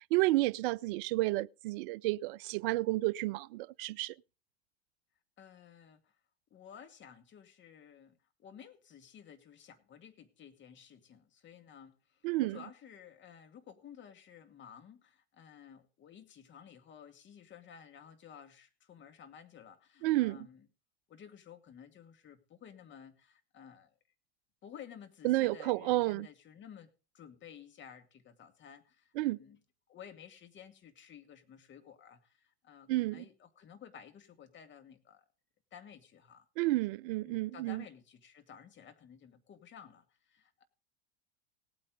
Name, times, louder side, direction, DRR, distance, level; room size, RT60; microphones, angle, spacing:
voice 1, 0.1-4.1 12.2-12.6 20.0-20.4 25.2-26.3 29.2-29.4 32.9-33.2 36.6-37.8, right 19 dB, 55° right, 0.5 m, -31 dB
voice 2, 5.4-6.2 6.5-20.7 21.1-23.9 24.6-29.6 29.9-35.2 35.7-36.5 37.1-40.6, left 8 dB, 35° left, 2.3 m, -54 dB
18.0 x 8.9 x 3.9 m
hypercardioid pair, 85°, 32 cm